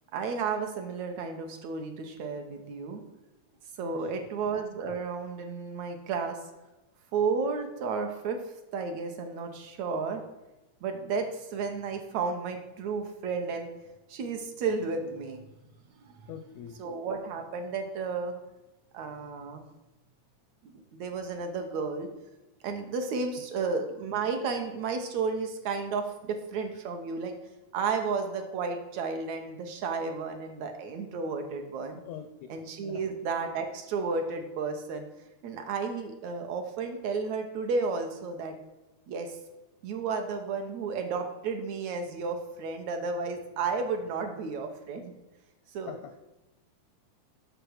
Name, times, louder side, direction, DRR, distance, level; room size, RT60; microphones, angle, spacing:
voice 1, 0.1-3.0 3.8-6.4 7.1-8.4 8.7-10.2 10.8-13.7 14.1-15.4 16.1-16.2 16.8-18.3 18.9-19.6 20.6-22.1 22.6-27.3 27.7-32.0 32.5-35.1 35.4-38.6 39.1-39.4 39.8-45.1 45.7-46.0, right 4 dB, 70° right, 5 dB, 2.0 m, -32 dB
voice 2, 3.8-4.3 16.3-16.8 23.6-23.7 31.9-32.3 32.9-33.1 45.9-46.2, left 9 dB, 80° left, 7 dB, 1.6 m, -44 dB
7.9 x 6.5 x 6.4 m, 1.0 s
omnidirectional pair, 3.7 m